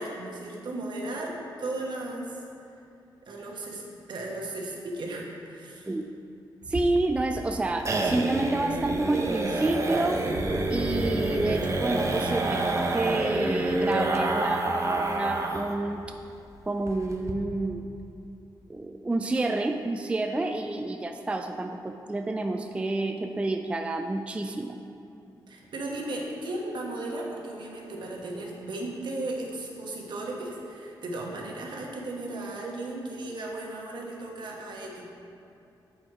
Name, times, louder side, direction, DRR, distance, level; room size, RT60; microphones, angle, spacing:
voice 1, 0.0-2.4 3.3-3.8 4.1-5.9 25.5-35.1, right 2 dB, 65° right, -2 dB, 1.2 m, -35 dB
voice 2, 6.7-10.2 10.7-16.1 16.7-17.9 18.7-24.8, right 2 dB, 15° right, 5 dB, 0.3 m, -29 dB
sound 1, 6.7-15.8 16.0-16.1 16.5-16.6 16.9-17.3, right 2 dB, 35° right, 0.7 m, -28 dB
7.2 x 4.8 x 4.8 m, 2.7 s
cardioid pair, 85°, 8 cm